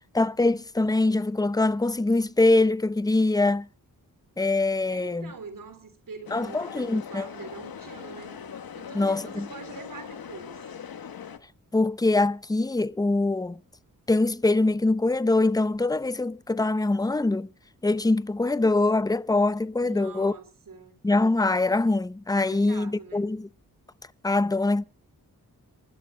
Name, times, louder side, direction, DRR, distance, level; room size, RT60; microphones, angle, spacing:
voice 1, 0.1-3.7 4.4-5.3 6.3-7.3 8.9-9.5 11.7-13.6 14.1-17.5 17.8-20.3 21.0-23.5 24.2-24.8, left 2 dB, 10° left, 0.6 m, -23 dB
voice 2, 4.9-8.4 8.8-10.6 19.8-21.0 22.3-23.3, right 5 dB, 65° right, 3.6 m, -44 dB
sound 1, 6.3-11.4, left 7 dB, 85° left, 1.5 m, -41 dB
28.0 x 14.0 x 2.2 m
wide cardioid pair, 90°, 35 cm